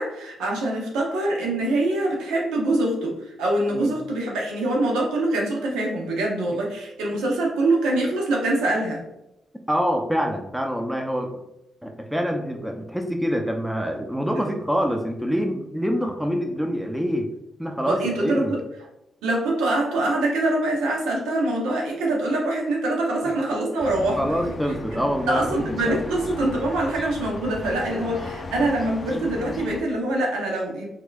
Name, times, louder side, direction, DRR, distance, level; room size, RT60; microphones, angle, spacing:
voice 1, 0.0-9.0 17.8-18.6 19.2-24.6 24.9-25.0 25.3-30.9, right 2 dB, 90° right, -1 dB, 0.7 m, -24 dB
voice 2, 9.7-11.3 11.8-17.3 17.6-18.5 23.3-23.4 24.2-25.6 25.9-26.0, equal, 5° right, 3 dB, 0.6 m, -26 dB
sound 1, 23.8-29.8, left 2 dB, 45° left, 0.4 m, -36 dB
3.6 x 3.2 x 2.4 m, 0.86 s
supercardioid pair, 55°, 0 cm